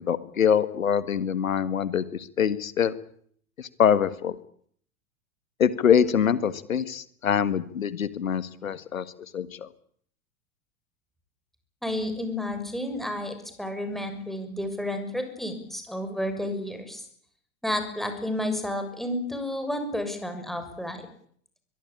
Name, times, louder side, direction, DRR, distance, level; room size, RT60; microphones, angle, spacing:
voice 1, 0.0-2.0 2.4-2.9 3.8-4.4 5.6-9.0 9.3-9.5, left 8 dB, 75° left, 15 dB, 1.8 m, -24 dB
voice 2, 11.8-17.0 17.6-21.0, left 1 dB, ahead, 6 dB, 6.7 m, -31 dB
23.0 x 22.5 x 8.7 m, 0.62 s
figure-of-eight pair, 90°, 41 cm